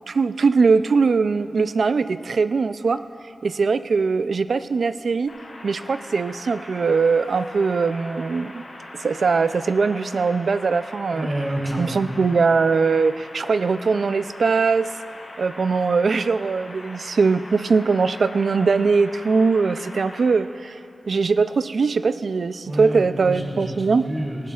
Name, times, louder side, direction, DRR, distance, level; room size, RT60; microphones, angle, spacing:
voice 1, 0.1-3.0 3.4-5.3 5.6-8.6 9.0-11.3 11.8-14.9 15.4-20.8 21.1-24.0, right 4 dB, 80° right, 12 dB, 0.3 m, -21 dB
sound 1, 5.3-20.3, left 1 dB, 70° left, 2.8 m, -41 dB
voice 2, 11.1-12.1 22.6-24.5, right 1 dB, 40° right, -1 dB, 2.0 m, -28 dB
19.0 x 16.0 x 2.4 m, 2.7 s
wide cardioid pair, 90°, 0 cm